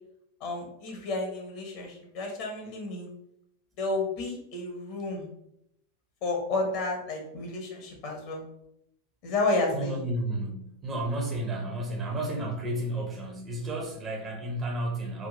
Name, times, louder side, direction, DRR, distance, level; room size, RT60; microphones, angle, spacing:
voice 1, 0.4-3.1 3.8-5.2 6.2-8.4 9.2-10.0, left 2 dB, 45° left, 1 dB, 1.2 m, -31 dB
voice 2, 9.7-15.3, right 1 dB, 20° right, 1 dB, 0.9 m, -32 dB
3.7 x 2.5 x 3.8 m, 0.78 s
figure-of-eight pair, 90°, 0 cm